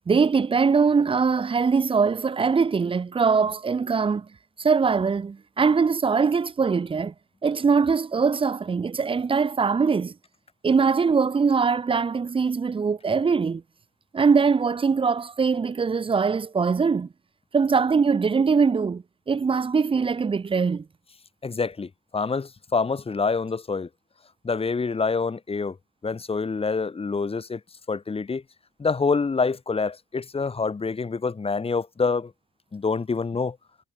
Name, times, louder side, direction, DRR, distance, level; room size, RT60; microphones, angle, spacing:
voice 1, 0.1-4.3 4.6-7.1 7.4-10.1 10.6-13.6 14.1-17.1 17.5-20.8, right 5 dB, 25° right, 0.8 m, -22 dB
voice 2, 21.4-23.9 24.4-25.8 26.0-27.6 27.9-28.4 28.8-32.3 32.7-33.6, left 4 dB, 30° left, 2.6 m, -26 dB
cardioid pair, 90°, 20 cm